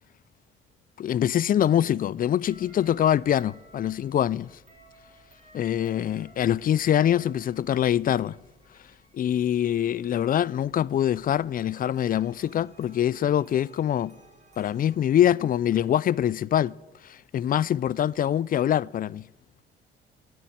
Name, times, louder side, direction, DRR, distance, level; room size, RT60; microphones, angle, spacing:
voice 1, 1.0-4.5 5.5-8.4 9.1-14.1 14.6-16.7 17.0-19.3, left 10 dB, 45° left, 0.4 m, -24 dB
sound 1, 2.4-15.0, right 1 dB, 35° right, 3.9 m, -56 dB
11.5 x 7.8 x 9.8 m
cardioid pair, 90°, 20 cm